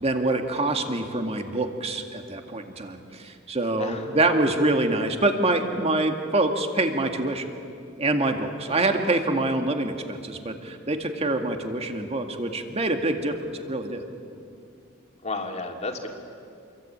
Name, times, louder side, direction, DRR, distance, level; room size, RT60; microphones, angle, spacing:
voice 1, 0.0-7.4 8.0-14.0, right 2 dB, 30° right, 5 dB, 2.1 m, -25 dB
voice 2, 3.8-4.1 8.7-8.8 15.2-16.1, left 3 dB, 35° left, 2 dB, 3.0 m, -32 dB
28.0 x 23.5 x 8.9 m, 2.4 s
head